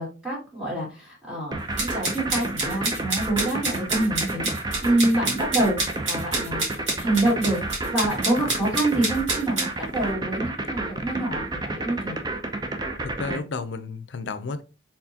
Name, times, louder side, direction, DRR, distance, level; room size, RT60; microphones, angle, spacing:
voice 1, 0.0-4.5 4.8-6.7 7.0-7.6 7.9-12.2, right 1 dB, 5° right, 2.1 m, -26 dB
sound 1, 1.5-13.4, right 2 dB, 20° right, 0.6 m, -30 dB
sound 2, 1.8-9.7, right 2 dB, 85° right, 2.0 m, -28 dB
voice 2, 13.0-14.6, left 4 dB, 70° left, 0.5 m, -32 dB
4.4 x 3.7 x 2.8 m
head